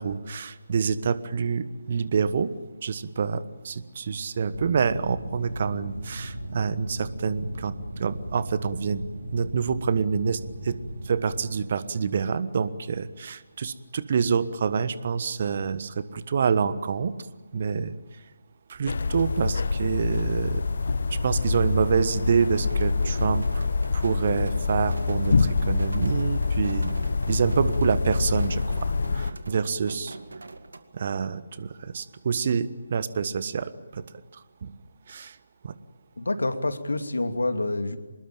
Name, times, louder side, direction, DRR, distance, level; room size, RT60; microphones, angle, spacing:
voice 1, 0.0-2.5 2.8-9.0 9.3-10.8 11.0-17.1 17.5-17.9 18.7-20.6 21.1-23.6 23.9-26.9 27.3-30.2 30.9-34.0 34.6-34.7 35.1-35.4 35.6-35.7, right 6 dB, 40° right, 15 dB, 1.3 m, -27 dB
sound 1, 4.5-11.5, right 1 dB, 85° left, 7.2 m, -37 dB
sound 2, 18.9-29.3, left 4 dB, 50° left, 1.2 m, -26 dB
sound 3, 21.6-30.8, right 3 dB, 65° right, 2.3 m, -44 dB
voice 2, 36.2-38.0, left 2 dB, 65° left, 9 dB, 2.6 m, -27 dB
25.5 x 20.5 x 9.0 m, 1.2 s
figure-of-eight pair, 145°, 0 cm